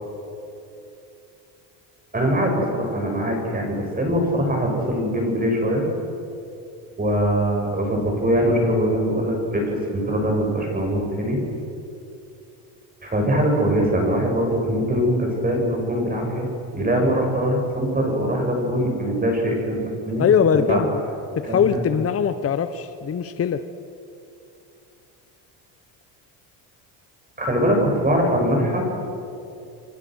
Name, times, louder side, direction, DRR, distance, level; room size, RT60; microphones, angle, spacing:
voice 1, 2.1-5.8 7.0-11.4 13.0-16.5 16.7-20.3 20.7-20.8 21.5-21.8 27.4-28.8, equal, 20° right, 1 dB, 7.1 m, -22 dB
voice 2, 20.2-21.0 21.4-23.6, left 7 dB, 30° left, 10 dB, 1.0 m, -21 dB
28.5 x 24.5 x 6.4 m, 2.7 s
cardioid pair, 105°, 44 cm